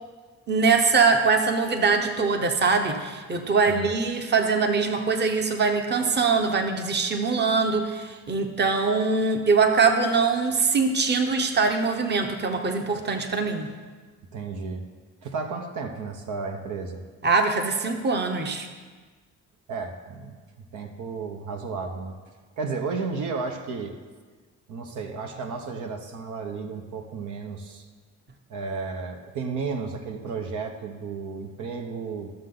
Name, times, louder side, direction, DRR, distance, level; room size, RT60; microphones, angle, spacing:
voice 1, 0.5-13.7 17.2-18.7, right 4 dB, 35° right, 5 dB, 1.0 m, -23 dB
voice 2, 14.3-14.9 15.2-17.0 19.7-20.3 20.7-22.1 22.6-24.0 24.7-27.8 28.5-32.3, right 4 dB, 80° right, 4 dB, 1.0 m, -33 dB
13.5 x 6.8 x 3.8 m, 1.4 s
cardioid pair, 90°, 30 cm